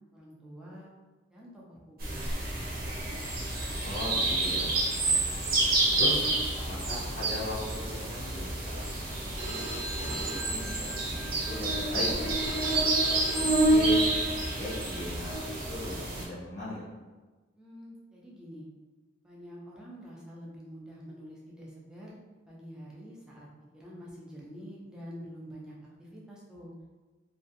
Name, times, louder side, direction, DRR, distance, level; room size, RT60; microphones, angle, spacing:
voice 1, 0.1-0.9 1.3-2.2 17.6-18.7 19.2-22.2 22.5-23.5 23.7-26.7, equal, 5° right, -6 dB, 0.5 m, -47 dB
sound 1, 2.0-16.2, right 2 dB, 50° right, 0.7 m, -29 dB
voice 2, 3.8-4.7 5.0-5.4 6.0-6.2 6.7-7.8 8.1-9.6 9.9-12.4 12.8-14.1 14.3-16.8, left 1 dB, 40° left, -10 dB, 0.6 m, -39 dB
Telephone, 9.4-15.3, right 1 dB, 20° right, 0.9 m, -41 dB
2.4 x 2.3 x 2.5 m, 1.3 s
head